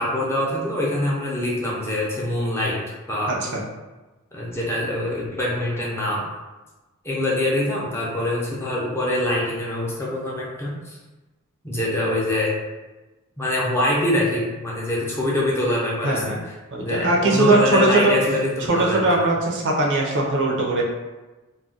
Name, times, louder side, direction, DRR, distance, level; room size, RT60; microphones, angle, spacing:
voice 1, 0.0-2.8 3.1-3.4 4.3-6.3 7.0-11.0 11.6-12.5 13.4-16.3 16.8-19.3, left 1 dB, 10° left, -5 dB, 0.5 m, -24 dB
voice 2, 16.0-16.4 16.7-18.2 18.7-20.8, right 2 dB, 55° right, -1 dB, 0.6 m, -20 dB
2.3 x 2.1 x 3.8 m, 1.1 s
head